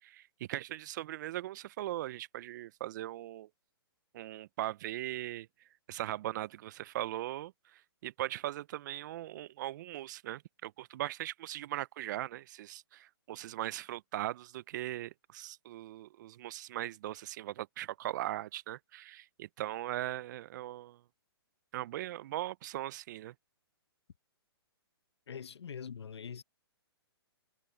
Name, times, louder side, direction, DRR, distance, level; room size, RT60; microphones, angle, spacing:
voice 1, 0.0-3.5 4.1-5.5 5.9-21.0 21.7-23.3, right 14 dB, 45° right, 0.5 m, -39 dB
voice 2, 25.3-26.4, left 7 dB, 80° left, 1.0 m, -43 dB
hypercardioid pair, 135°, 14 cm